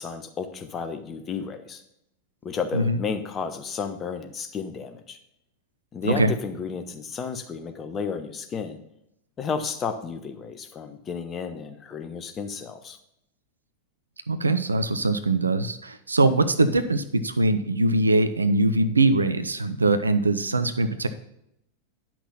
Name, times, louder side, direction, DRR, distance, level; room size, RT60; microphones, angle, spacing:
voice 1, 0.0-1.8 2.4-5.2 5.9-8.8 9.4-13.0 16.2-16.3, left 6 dB, 25° left, 7 dB, 1.1 m, -32 dB
voice 2, 14.3-21.1, right 2 dB, 80° right, 11 dB, 0.7 m, -22 dB
10.0 x 6.0 x 5.6 m, 0.77 s
figure-of-eight pair, 90°, 0 cm